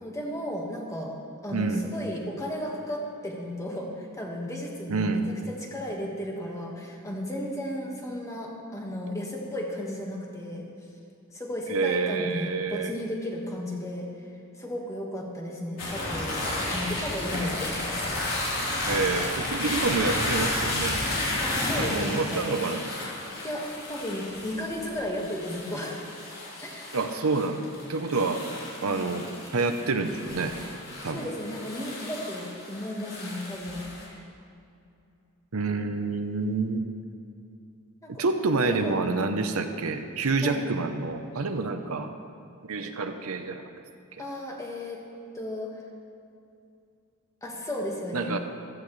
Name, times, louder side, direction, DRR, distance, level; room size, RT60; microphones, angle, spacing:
voice 1, 0.0-1.1 1.4-5.2 5.5-10.7 11.3-14.1 14.6-16.4 16.7-17.9 21.4-22.4 23.4-26.0 26.6-27.0 28.2-28.4 28.8-29.0 31.0-34.2 38.0-38.2 38.6-39.3 40.4-40.6 44.2-45.0 45.3-45.7 47.4-48.4, left 1 dB, 15° left, -1 dB, 1.6 m, -34 dB
voice 2, 1.5-1.9 4.9-5.3 11.7-12.9 18.9-21.0 21.8-22.8 26.9-28.4 28.8-29.3 29.5-30.6 31.0-31.3 35.5-36.9 38.1-42.1 42.6-43.6 48.1-48.4, right 3 dB, 70° right, 6 dB, 0.8 m, -28 dB
sound 1, 15.8-34.0, left 1 dB, 70° left, 3.7 m, -32 dB
15.5 x 14.0 x 3.2 m, 2.5 s
head